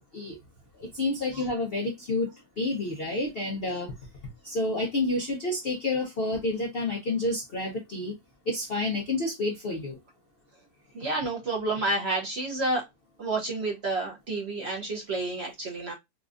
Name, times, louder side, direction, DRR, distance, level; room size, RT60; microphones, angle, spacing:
voice 1, 0.8-2.3 2.6-3.9 4.4-8.1 8.5-10.0, left 2 dB, 60° left, 0.6 m, -29 dB
voice 2, 11.0-12.8 13.2-15.9, right 2 dB, 50° right, 0.8 m, -29 dB
4.1 x 2.4 x 2.4 m
omnidirectional pair, 1.8 m